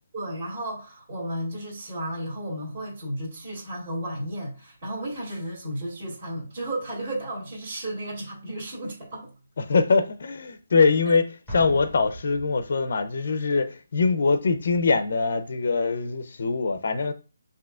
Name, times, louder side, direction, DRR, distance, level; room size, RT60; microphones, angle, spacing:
voice 1, 0.1-9.3, right 1 dB, 30° right, 2.2 m, -33 dB
voice 2, 9.6-17.1, left 4 dB, 45° left, 0.5 m, -23 dB
Explosion, 11.5-13.1, right 1 dB, ahead, 1.1 m, -40 dB
7.3 x 2.8 x 2.4 m
hypercardioid pair, 175°, 0 cm